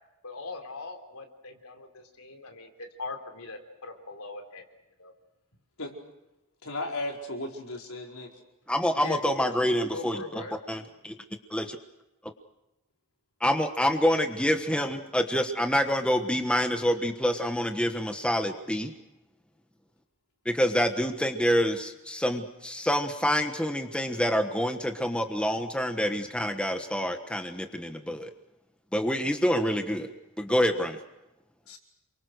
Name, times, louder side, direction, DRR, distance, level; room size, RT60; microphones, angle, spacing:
voice 1, 0.2-4.7 5.0-5.1 9.0-9.5 9.9-10.5, left 3 dB, 85° left, 4 dB, 3.7 m, -40 dB
voice 2, 6.6-8.3 31.7-31.8, left 2 dB, 70° left, 1 dB, 4.9 m, -35 dB
voice 3, 8.7-10.4 10.7-11.1 11.5-11.6 13.4-18.9 20.4-28.3 28.9-30.1 30.4-31.0, equal, 5° left, 6 dB, 1.3 m, -27 dB
28.5 x 24.0 x 6.5 m, 0.97 s
head